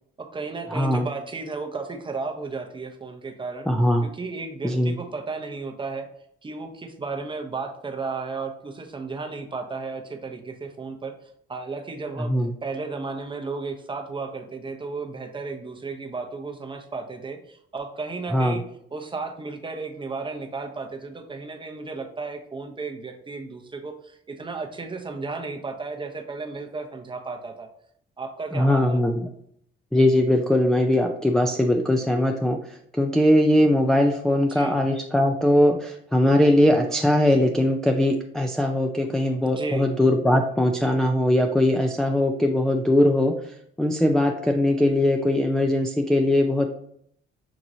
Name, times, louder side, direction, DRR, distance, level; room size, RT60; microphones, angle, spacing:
voice 1, 0.2-3.7 4.0-6.1 6.4-11.1 11.5-12.3 12.6-18.6 18.9-27.7 28.2-29.0 34.3-34.8 39.4-39.9, right 4 dB, 25° right, 5 dB, 0.7 m, -34 dB
voice 2, 0.7-1.1 3.7-4.1 4.6-5.0 12.2-12.5 18.3-18.6 28.5-29.3 29.9-46.7, left 1 dB, 5° left, 2 dB, 0.3 m, -21 dB
6.1 x 2.9 x 2.6 m, 0.68 s
cardioid pair, 90°, 20 cm